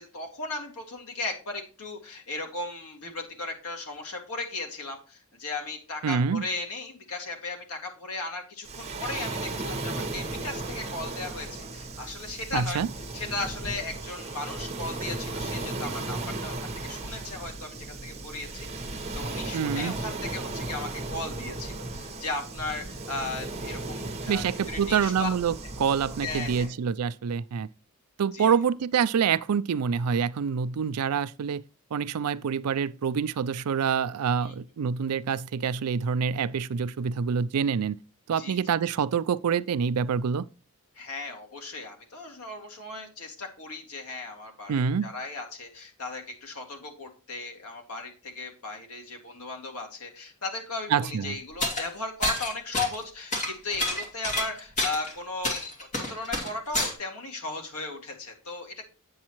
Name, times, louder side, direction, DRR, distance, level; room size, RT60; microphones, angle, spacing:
voice 1, 0.0-12.8 13.1-25.3 26.2-26.7 28.3-28.5 34.4-34.5 38.4-38.6 40.9-55.6 56.0-58.8, left 3 dB, 80° left, 2.2 m, -36 dB
voice 2, 6.0-6.4 12.5-12.9 19.5-19.9 24.3-27.7 28.2-31.6 31.9-38.0 38.3-40.5 44.7-45.1 50.9-51.4, right 6 dB, 90° right, 0.4 m, -26 dB
Waves surf, 8.6-26.7, right 2 dB, 30° right, 1.0 m, -36 dB
sound 1, 51.6-51.9 52.2-53.0 53.3-55.1 55.4-56.9, left 1 dB, 35° left, 2.3 m, -28 dB
8.6 x 7.2 x 3.0 m
head